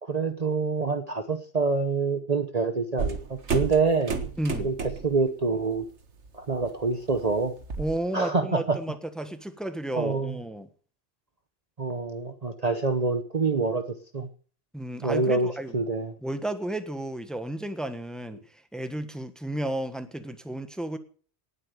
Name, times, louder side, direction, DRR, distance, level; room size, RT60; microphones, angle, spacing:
voice 1, 0.0-3.2 3.5-4.2 4.6-5.9 6.3-7.5 8.1-8.8 10.0-10.4 11.8-13.8 14.1-14.3 15.0-16.1, right 4 dB, 35° right, 1.0 m, -26 dB
sound 1, 3.0-5.2 5.6-5.9 6.3-8.0, right 5 dB, 85° right, 1.8 m, -32 dB
voice 2, 4.4-4.7 7.8-10.7 14.7-15.7 16.2-18.4 18.7-21.0, right 1 dB, ahead, 1.3 m, -32 dB
18.5 x 8.3 x 6.7 m
omnidirectional pair, 1.1 m